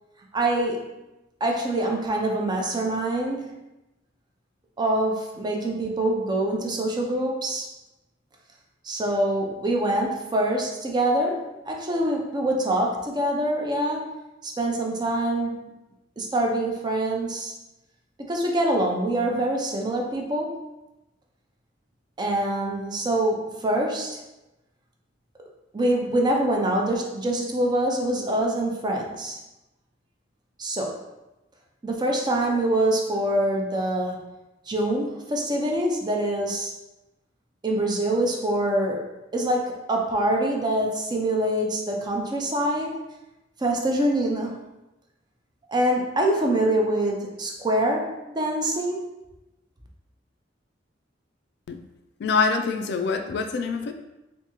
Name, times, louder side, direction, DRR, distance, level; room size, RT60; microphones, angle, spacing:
voice 1, 0.3-0.9 1.4-3.6 4.8-7.7 8.8-14.1 14.4-15.6 16.2-17.5 18.2-20.6 22.2-24.2 25.7-29.4 30.6-31.0 31.8-34.3 34.7-36.7 37.6-43.0 43.6-44.6 45.7-49.0, right 1 dB, 25° right, 0 dB, 0.5 m, -25 dB
voice 2, 52.2-53.9, left 4 dB, 65° left, 6 dB, 0.3 m, -25 dB
3.5 x 2.7 x 2.9 m, 0.99 s
head